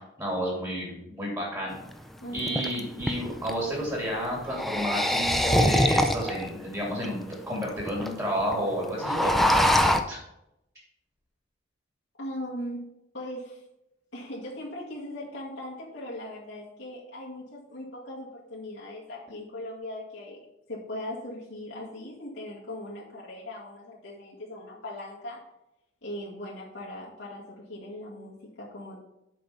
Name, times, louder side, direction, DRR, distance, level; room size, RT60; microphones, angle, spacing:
voice 1, 0.0-1.7 2.3-10.2, equal, 20° right, -3 dB, 2.5 m, -31 dB
sound 1, 1.7-1.8 2.4-3.6 4.4-6.5 7.0-7.1 7.3-7.4 7.6-8.1 8.4-8.5 8.8-10.0, left 1 dB, ahead, 0.4 m, -24 dB
voice 2, 2.2-2.7 12.2-12.9 13.1-13.6 14.1-20.4 20.7-25.4 26.0-29.0, left 1 dB, 85° left, -7 dB, 2.2 m, -39 dB
7.7 x 5.2 x 5.6 m, 0.85 s
head